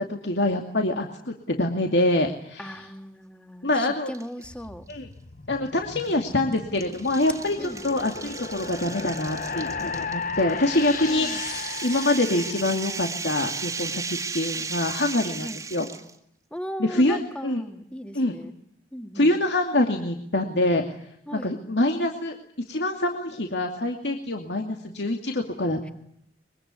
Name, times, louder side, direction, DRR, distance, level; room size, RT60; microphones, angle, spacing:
voice 1, 0.1-2.8 3.6-4.1 4.9-5.1 5.5-15.9 16.8-17.6 18.1-18.3 19.1-20.8 21.3-22.4 22.7-25.9, left 1 dB, 80° left, 3 dB, 2.5 m, -25 dB
voice 2, 2.6-4.8 7.6-7.8 11.1-11.4 15.4-15.6 16.5-18.5 18.9-19.4 21.3-21.6, equal, 5° left, 7 dB, 1.9 m, -37 dB
sound 1, 4.1-4.5 4.9-5.0 6.0-16.1, right 5 dB, 20° right, 2.0 m, -35 dB
sound 2, 4.4-13.8, left 5 dB, 50° left, 1.0 m, -36 dB
24.0 x 23.5 x 9.7 m, 0.72 s
head